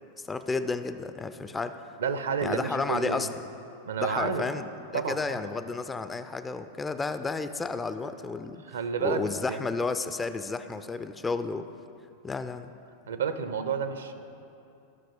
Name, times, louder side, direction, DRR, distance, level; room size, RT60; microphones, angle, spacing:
voice 1, 0.3-1.9 2.4-3.3 4.0-4.7 4.9-8.6 9.0-11.7 12.2-12.7, left 4 dB, 15° left, 11 dB, 0.4 m, -32 dB
voice 2, 2.0-3.3 3.9-4.5 4.9-5.4 8.6-9.6 13.1-14.2, right 6 dB, 65° right, 9 dB, 0.6 m, -30 dB
15.0 x 5.8 x 5.0 m, 2.6 s
figure-of-eight pair, 90°, 0 cm